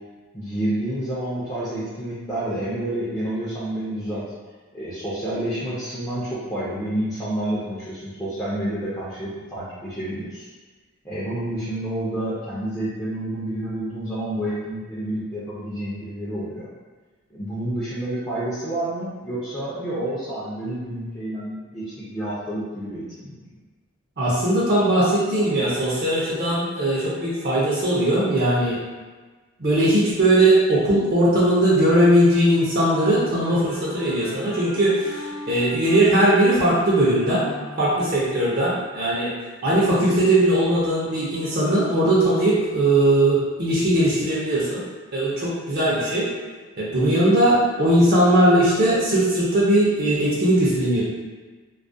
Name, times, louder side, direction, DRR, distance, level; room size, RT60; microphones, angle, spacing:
voice 1, 0.3-4.2 4.7-10.5 11.0-16.7 17.3-23.4, right 1 dB, 15° left, -12 dB, 0.4 m, -29 dB
voice 2, 24.2-28.8 29.6-37.5 37.8-39.3 39.6-44.8 45.1-46.3 46.8-51.0, right 1 dB, 45° right, -7 dB, 0.5 m, -19 dB
sound 1, 32.8-38.4, equal, 85° right, 0.7 m, -38 dB
2.3 x 2.1 x 2.6 m, 1.3 s
head